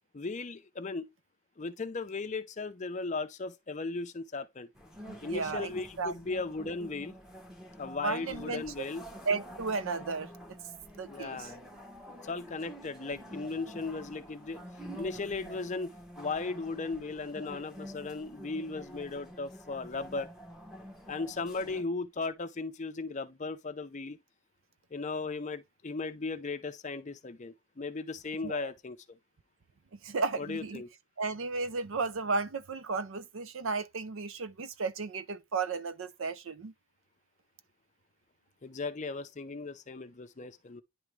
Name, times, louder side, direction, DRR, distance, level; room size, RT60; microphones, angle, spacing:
voice 1, 0.1-1.1 1.6-4.7 5.2-7.1 7.8-9.1 11.1-11.6 12.2-14.6 15.0-20.3 21.1-24.2 24.9-29.0 30.4-30.9 38.6-40.8, left 3 dB, 30° left, 0.5 m, -37 dB
sound 1, 4.8-21.8, equal, ahead, 1.1 m, -48 dB
voice 2, 5.0-5.7 6.0-6.1 8.0-8.9 9.3-10.6 11.0-11.5 28.4-28.7 30.0-30.8 31.2-36.7, right 4 dB, 60° right, 0.5 m, -34 dB
9.9 x 3.5 x 3.1 m
head